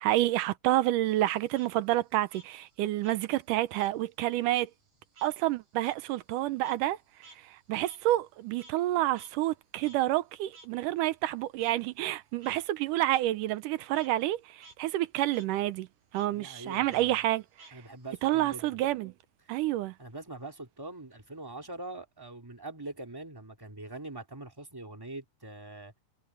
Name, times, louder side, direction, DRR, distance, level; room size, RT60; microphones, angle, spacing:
voice 1, 0.0-4.7 5.2-7.0 7.7-15.9 16.1-17.4 18.2-19.1 19.5-19.9, right 15 dB, 75° right, 2.2 m, -29 dB
Frog, 1.1-4.0 4.3-8.9 9.2-9.3 9.8-10.0 10.5-10.7 11.6-11.7 12.3-12.6 13.1-13.2 13.6-14.1 14.5-14.8 15.1-15.5 16.1-16.3 16.9-18.1, right 2 dB, 60° right, 7.5 m, -54 dB
voice 2, 16.3-17.2 17.7-18.7 20.0-25.9, right 2 dB, 5° right, 2.6 m, -43 dB
omnidirectional pair, 3.9 m